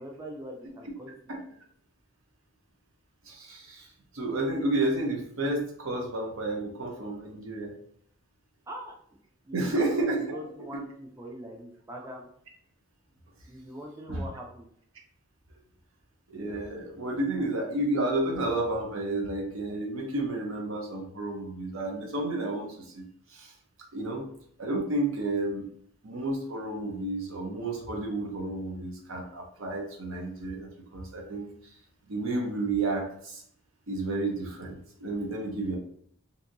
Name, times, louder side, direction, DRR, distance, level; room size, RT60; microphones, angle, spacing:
voice 1, 0.0-1.1 8.7-9.2 9.5-9.9 10.1-12.3 13.5-14.7, equal, 15° right, 0 dB, 0.3 m, -42 dB
voice 2, 3.2-3.9 4.1-7.8 9.5-10.4 14.1-14.2 16.3-23.0 23.3-23.5 23.9-24.3 24.6-25.7 26.0-31.5 32.1-33.4 33.9-35.8, right 2 dB, 75° right, 1 dB, 0.7 m, -31 dB
2.7 x 2.6 x 2.6 m, 0.65 s
head